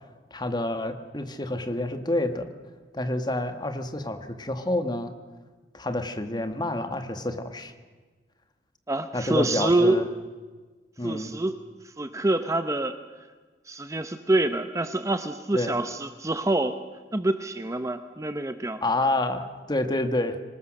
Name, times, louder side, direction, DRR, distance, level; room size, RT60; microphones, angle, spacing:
voice 1, 0.3-2.5 2.9-5.1 5.7-7.7 9.1-10.0 11.0-11.3 15.5-15.7 18.8-20.4, left 1 dB, 25° left, 7 dB, 1.7 m, -28 dB
voice 2, 8.9-10.1 11.0-11.6 12.0-13.0 13.7-16.8 17.1-18.8, right 2 dB, 20° right, 9 dB, 0.8 m, -26 dB
24.5 x 20.0 x 6.5 m, 1.4 s
head